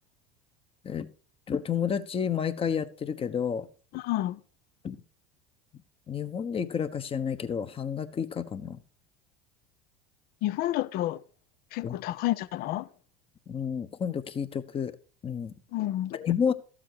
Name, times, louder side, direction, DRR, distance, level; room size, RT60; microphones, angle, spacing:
voice 1, 1.5-3.7 4.8-5.0 6.1-8.8 11.8-12.0 13.5-14.9 15.2-15.5 16.1-16.5, left 7 dB, 30° left, 1.1 m, -30 dB
voice 2, 3.9-4.4 10.4-11.2 11.7-12.9 15.7-16.2, left 15 dB, 50° left, 0.7 m, -30 dB
13.5 x 7.6 x 4.8 m
hypercardioid pair, 75°, 20 cm